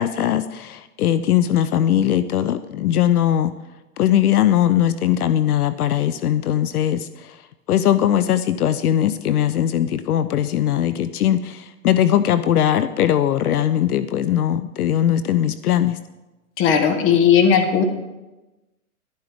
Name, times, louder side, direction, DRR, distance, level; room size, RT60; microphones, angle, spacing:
voice 1, 0.0-3.5 4.0-7.4 7.7-16.0, left 11 dB, 80° left, 13 dB, 0.6 m, -20 dB
voice 2, 16.6-17.8, left 7 dB, 30° left, 6 dB, 1.4 m, -16 dB
12.0 x 11.5 x 3.5 m, 1.1 s
hypercardioid pair, 130°, 44 cm